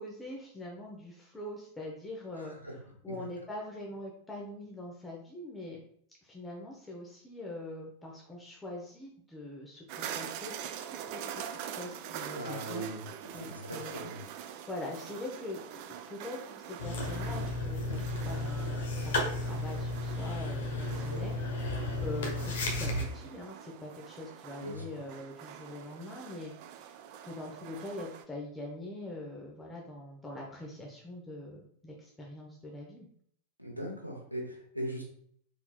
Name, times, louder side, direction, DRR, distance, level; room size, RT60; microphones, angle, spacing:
voice 1, 0.0-2.5 3.0-5.8 6.2-12.9 13.3-15.8 16.1-21.4 21.7-26.9 27.2-33.1, left 1 dB, 10° left, -2 dB, 0.9 m, -43 dB
voice 2, 2.3-2.7 3.1-3.2 12.3-14.1 17.9-18.0 20.9-21.4 24.6-24.8 33.6-35.1, right 1 dB, 90° right, 0 dB, 1.1 m, -40 dB
sound 1, 9.9-28.2, right 9 dB, 45° right, 0.4 m, -44 dB
sound 2, 16.8-23.0, left 2 dB, 60° left, 1.0 m, -33 dB
4.1 x 4.0 x 2.3 m, 0.64 s
figure-of-eight pair, 90°, 0 cm